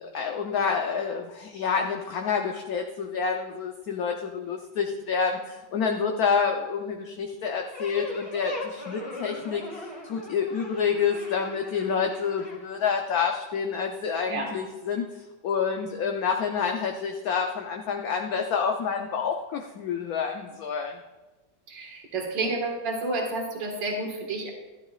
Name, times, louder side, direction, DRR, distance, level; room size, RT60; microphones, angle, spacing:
voice 1, 0.0-15.1 15.4-21.0, left 6 dB, 60° left, 2 dB, 1.0 m, -28 dB
sound 1, 7.7-12.6, left 2 dB, 15° left, 2.6 m, -39 dB
voice 2, 21.7-24.5, right 2 dB, 65° right, 1 dB, 2.4 m, -30 dB
13.0 x 12.5 x 2.4 m, 1.1 s
omnidirectional pair, 2.1 m